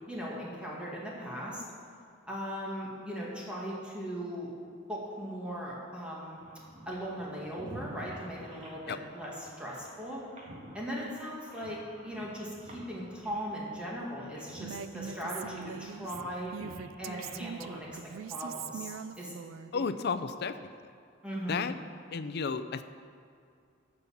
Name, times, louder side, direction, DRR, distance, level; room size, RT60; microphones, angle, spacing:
voice 1, 0.1-1.6 2.3-4.5 4.9-6.4 6.9-10.2 10.7-16.5 17.0-18.0 18.3-19.4 19.7-19.8 21.2-21.7, equal, 5° right, -5 dB, 2.0 m, -39 dB
sound 1, 6.4-18.8, right 1 dB, 35° right, 1.9 m, -50 dB
Female speech woman speaking, 14.6-19.7, right 7 dB, 85° right, 0.4 m, -42 dB
voice 2, 19.7-20.6 21.5-21.7 22.1-22.8, left 5 dB, 55° left, 12 dB, 0.5 m, -32 dB
13.5 x 5.4 x 7.2 m, 2.4 s
head